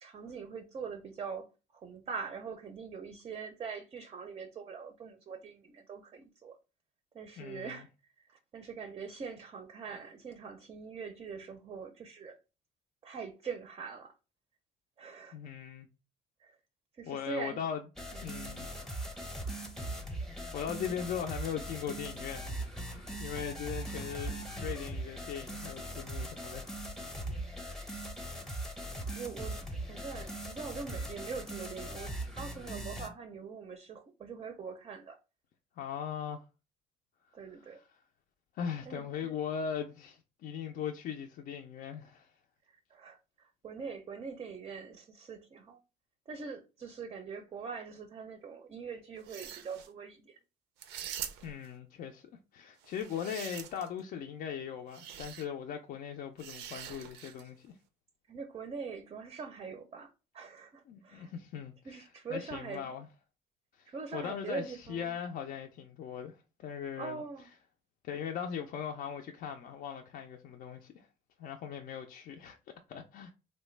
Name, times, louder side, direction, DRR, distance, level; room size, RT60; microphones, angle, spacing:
voice 1, 0.0-1.5 1.8-6.5 7.1-7.9 8.2-12.4 13.0-14.1 15.0-15.4 16.4-16.6 17.0-17.6 18.1-18.3 20.7-21.0 29.1-35.2 37.3-37.8 38.8-39.3 42.7-45.8 46.3-50.4 58.3-61.3 61.8-63.0 63.9-65.2 67.0-67.5, right 5 dB, 35° right, 0.5 m, -43 dB
voice 2, 7.4-7.8 15.3-15.9 17.1-17.8 18.2-18.7 20.5-26.7 35.8-36.4 38.5-42.3 51.4-52.3 52.5-57.7 60.9-63.1 63.7-67.2 68.0-71.1 71.4-72.6 72.9-73.3, left 8 dB, 60° left, 0.4 m, -39 dB
sound 1, 18.0-33.1, right 1 dB, 5° left, 0.7 m, -40 dB
sound 2, 49.2-49.9 50.8-51.7 52.8-54.0 54.9-55.5 56.4-57.5, right 9 dB, 90° right, 0.5 m, -44 dB
3.1 x 2.1 x 3.2 m
cardioid pair, 110°, 17 cm